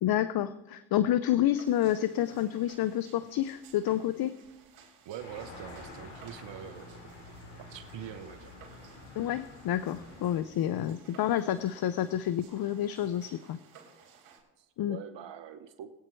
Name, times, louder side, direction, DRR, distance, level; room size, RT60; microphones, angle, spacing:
voice 1, 0.0-4.4 9.2-13.6 14.8-15.0, left 12 dB, 50° left, 14 dB, 0.6 m, -29 dB
sound 1, 1.6-14.4, right 7 dB, 80° right, 3.7 m, -57 dB
voice 2, 5.0-7.0 7.6-8.5 14.6-15.9, right 9 dB, 60° right, 10 dB, 1.0 m, -44 dB
sound 2, 5.2-10.4, left 2 dB, 85° left, 2.8 m, -48 dB
21.5 x 8.8 x 3.2 m, 1.1 s
supercardioid pair, 75°, 49 cm